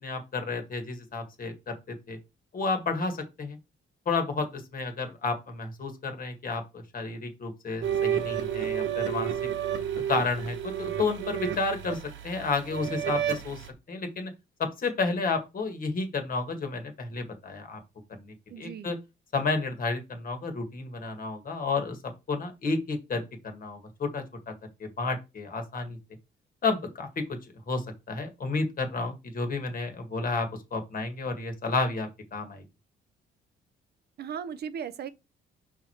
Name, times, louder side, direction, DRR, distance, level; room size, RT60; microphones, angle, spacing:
voice 1, 0.0-2.2 2.5-3.6 4.0-9.3 10.1-12.0 12.2-14.3 14.6-17.8 18.2-19.0 19.3-22.0 22.3-24.5 24.8-26.0 26.6-27.4 27.7-32.6, left 3 dB, 45° left, 1.6 m, -31 dB
sound 1, 7.8-13.7, right 9 dB, 75° right, 1.2 m, -31 dB
voice 2, 18.5-18.9 34.2-35.1, right 7 dB, 55° right, 0.6 m, -37 dB
5.6 x 4.7 x 4.4 m
cardioid pair, 130°, 20 cm